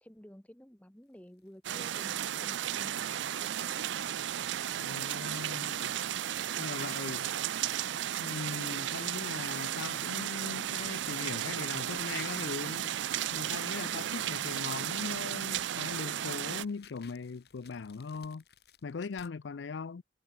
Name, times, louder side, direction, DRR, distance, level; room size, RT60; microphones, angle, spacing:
voice 1, 0.0-3.1 3.4-3.9, equal, 10° left, 1.0 m, -53 dB
sound 1, 1.0-1.6 2.0-2.1 2.7-3.3 4.1-19.3, left 7 dB, 60° left, 3.5 m, -62 dB
sound 2, 1.6-16.6, right 11 dB, 85° right, 0.4 m, -34 dB
voice 2, 4.8-5.9 6.6-7.3 8.2-12.9 13.3-18.4 18.8-20.0, left 5 dB, 90° left, 0.5 m, -40 dB
head